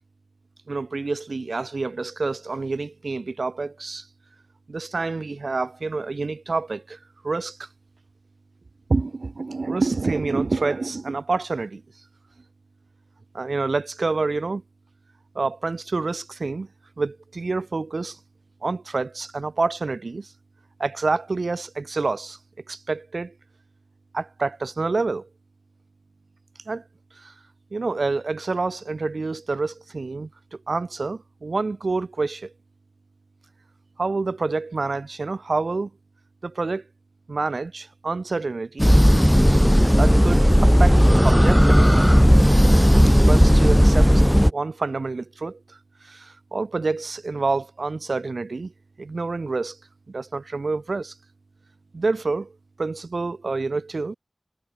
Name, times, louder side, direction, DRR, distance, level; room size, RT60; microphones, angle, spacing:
voice 1, 0.7-4.1 4.7-7.0 7.2-7.7 8.9-11.8 13.3-14.6 15.3-16.7 17.0-18.2 18.6-20.3 20.8-22.4 22.7-23.3 24.1-25.3 26.7-26.8 27.2-27.3 27.7-30.3 30.7-32.5 34.0-35.9 36.4-36.8 37.3-38.9 40.0-41.0 41.2-42.0 43.3-45.8 46.0-48.7 49.0-49.8 50.1-51.1 51.9-52.5 52.8-54.2, right 3 dB, 90° right, 7.9 m, -27 dB
sound 1, 38.8-44.5, equal, ahead, 0.8 m, -15 dB
wide cardioid pair, 50°, 0 cm